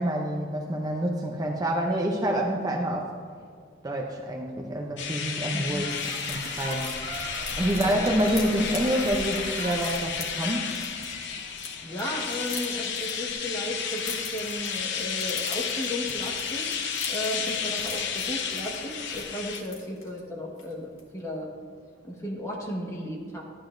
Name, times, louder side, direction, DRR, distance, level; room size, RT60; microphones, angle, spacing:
voice 1, 0.0-3.1 3.8-7.0 7.6-10.7, right 1 dB, 20° right, 0 dB, 0.6 m, -27 dB
sound 1, 5.0-5.1 5.4-5.5 5.7-11.7 12.0-20.2 20.6-20.7 21.0-21.2, left 5 dB, 80° left, 1.7 m, -43 dB
sound 2, 5.0-19.6, left 7 dB, 60° left, 0.7 m, -32 dB
voice 2, 5.5-5.8 7.8-8.1 11.8-16.7 17.1-21.5 22.0-23.4, equal, 15° left, -2 dB, 1.3 m, -35 dB
sound 3, 5.6-11.5, right 1 dB, 65° right, 2.1 m, -39 dB
12.5 x 9.2 x 2.6 m, 2.1 s
head